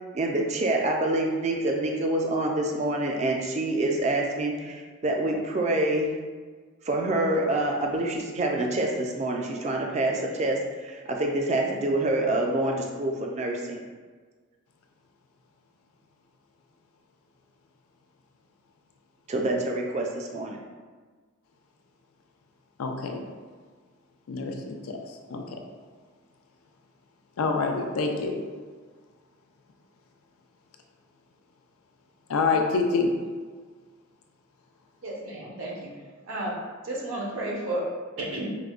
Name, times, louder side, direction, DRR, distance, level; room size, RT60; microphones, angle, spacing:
voice 1, 0.1-6.2 6.8-13.8 19.3-20.6, right 1 dB, 30° right, 1 dB, 0.3 m, -26 dB
voice 2, 22.8-23.2 24.3-25.6 27.4-28.4 32.3-33.2, left 4 dB, 85° left, 3 dB, 0.4 m, -27 dB
voice 3, 35.0-36.0 36.3-37.9 38.2-38.5, right 1 dB, 70° right, -4 dB, 0.8 m, -32 dB
4.7 x 2.1 x 2.4 m, 1.5 s
head